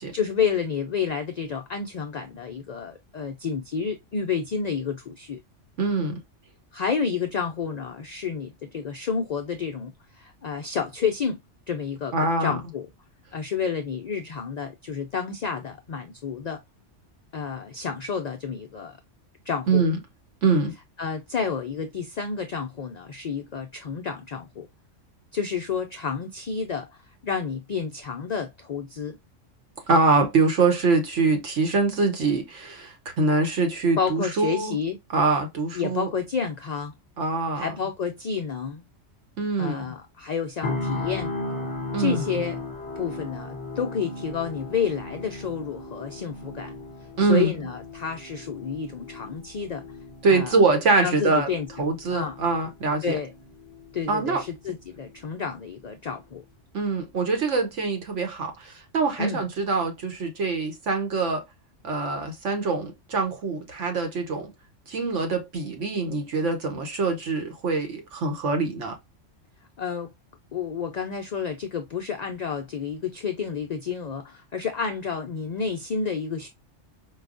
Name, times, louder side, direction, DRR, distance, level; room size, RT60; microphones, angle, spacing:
voice 1, 0.1-5.4 6.7-9.9 10.2-11.4 11.7-12.9 13.3-16.6 17.3-19.0 19.5-19.8 21.0-24.7 25.3-26.9 27.2-29.2 34.0-35.0 35.7-36.9 37.5-38.8 39.6-41.3 42.0-42.6 43.0-46.7 47.2-49.8 50.3-50.6 51.0-51.7 52.1-52.4 53.0-53.3 53.9-56.4 59.2-59.4 69.8-70.1 70.5-76.5, left 6 dB, 70° left, 0.4 m, -30 dB
voice 2, 5.8-6.2 12.1-12.6 19.7-20.0 20.4-20.7 29.9-34.8 35.1-36.1 37.2-37.7 39.4-39.8 41.9-42.2 47.2-47.5 50.2-51.5 51.8-53.2 54.1-54.4 56.7-61.4 61.8-64.5 64.9-69.0, right 3 dB, 75° right, 1.3 m, -24 dB
sound 1, 40.6-54.6 55.0-55.2, left 2 dB, 30° left, 0.8 m, -36 dB
4.6 x 2.3 x 2.4 m
omnidirectional pair, 1.3 m